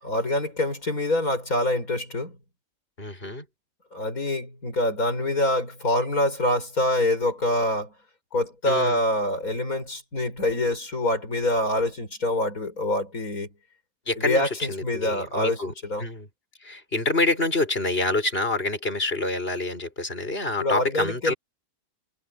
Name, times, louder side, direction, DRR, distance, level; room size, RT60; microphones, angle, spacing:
voice 1, 0.0-2.3 3.9-7.9 8.3-13.5 14.2-16.1 20.6-21.3, left 1 dB, 65° left, 6.7 m, -25 dB
voice 2, 3.0-3.4 8.7-9.0 14.1-15.7 16.0-16.3 16.6-21.3, left 2 dB, 35° left, 6.3 m, -27 dB
omnidirectional pair, 1.6 m